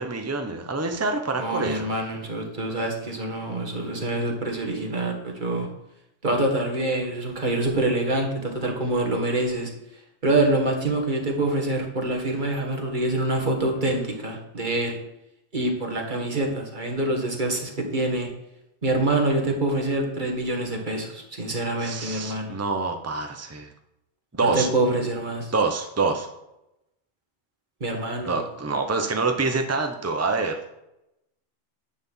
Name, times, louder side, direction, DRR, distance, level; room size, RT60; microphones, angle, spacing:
voice 1, 0.0-1.9 21.8-23.7 24.3-24.7 25.5-26.3 28.3-30.6, right 3 dB, 15° right, 5 dB, 0.9 m, -26 dB
voice 2, 1.4-5.7 6.2-9.7 10.2-15.0 15.5-18.3 18.8-22.5 24.4-25.5 27.8-28.4, right 2 dB, 45° right, 2 dB, 2.0 m, -26 dB
10.5 x 4.3 x 7.4 m, 0.88 s
omnidirectional pair, 1.2 m